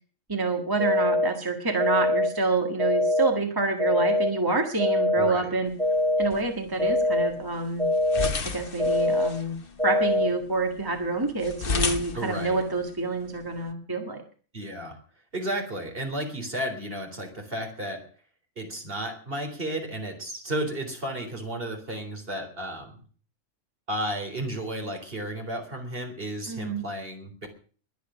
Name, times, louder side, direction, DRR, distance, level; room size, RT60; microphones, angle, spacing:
voice 1, 0.3-5.7 6.2-7.9 8.5-9.6 9.8-14.2 26.5-26.8, right 3 dB, 15° right, 3 dB, 1.7 m, -27 dB
sound 1, 0.8-1.3 1.8-2.3 2.8-3.3 3.8-4.3 4.8-5.3 5.8-6.3 6.8-7.3 7.8-8.3 8.8-9.3 9.8-10.3, left 1 dB, 5° left, 2.3 m, -23 dB
voice 2, 5.2-5.6 12.1-12.6 14.5-15.0 15.3-18.1 18.6-23.0 23.9-27.5, right 1 dB, 45° right, 4 dB, 3.9 m, -33 dB
sound 2, 5.7-13.7, left 4 dB, 45° left, 1.4 m, -35 dB
21.5 x 9.1 x 6.2 m, 0.42 s
omnidirectional pair, 1.3 m